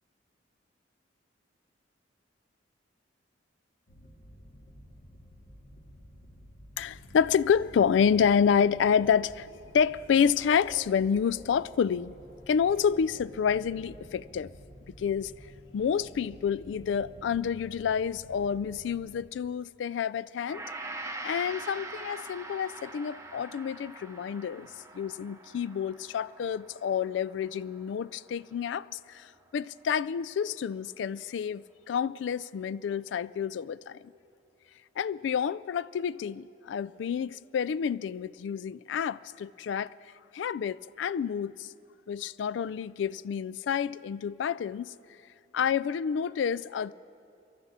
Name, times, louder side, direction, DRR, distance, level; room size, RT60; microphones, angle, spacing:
sound 1, 3.9-19.2, equal, 55° left, 1.8 m, -51 dB
voice 1, 6.8-12.1 12.5-14.5 15.0-15.3 15.7-20.6 21.2-24.7 24.9-29.3 29.5-34.0 35.0-39.9 40.3-41.7 42.1-44.9 45.5-46.9, left 7 dB, 75° left, 0.3 m, -28 dB
Gong, 20.5-28.9 29.2-29.4, right 2 dB, 15° right, 0.7 m, -44 dB
23.5 x 12.5 x 4.2 m
head